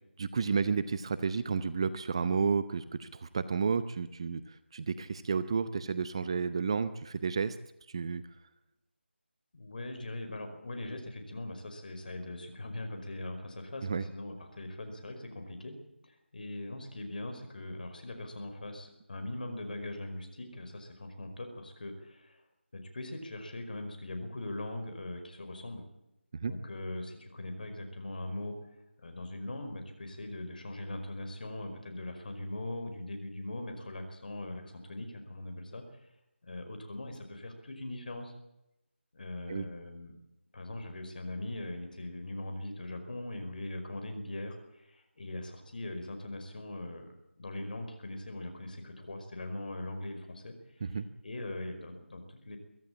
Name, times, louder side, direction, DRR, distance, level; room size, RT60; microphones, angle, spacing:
voice 1, 0.2-7.6 7.9-8.2 13.8-14.0 26.3-26.5 39.5-39.7 50.8-51.1, right 5 dB, 25° right, 13 dB, 0.7 m, -31 dB
voice 2, 9.5-15.8 16.0-22.4 22.7-25.8 26.4-28.6 29.0-35.8 36.4-38.3 39.1-40.2 40.5-50.5 50.8-50.9 51.2-52.6, left 1 dB, 45° left, 6 dB, 5.1 m, -41 dB
23.5 x 15.0 x 8.7 m, 0.90 s
figure-of-eight pair, 170°, 6 cm